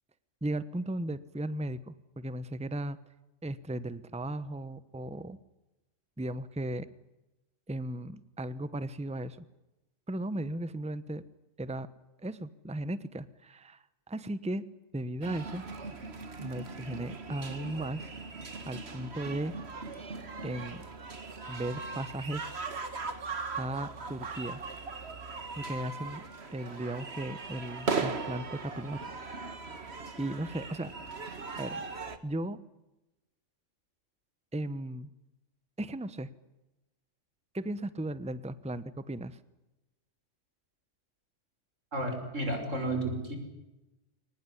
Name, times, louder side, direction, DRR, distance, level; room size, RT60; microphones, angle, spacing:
voice 1, 0.4-3.0 3.4-5.4 6.2-6.9 7.7-9.4 10.1-11.2 11.6-11.9 12.2-14.6 14.9-15.6 16.4-18.1 18.7-19.5 20.4-20.8 21.5-22.5 23.5-24.6 25.6-26.2 26.5-29.1 30.2-30.9 31.6-31.8 32.2-32.6 34.5-35.1 35.8-36.3 37.5-39.4, right 1 dB, 5° right, 15 dB, 0.9 m, -36 dB
sound 1, 15.2-32.2, right 4 dB, 60° right, 2.0 m, -39 dB
voice 2, 41.9-43.4, right 1 dB, 90° right, 5 dB, 6.2 m, -32 dB
24.0 x 19.5 x 10.0 m, 1.0 s
omnidirectional pair, 1.3 m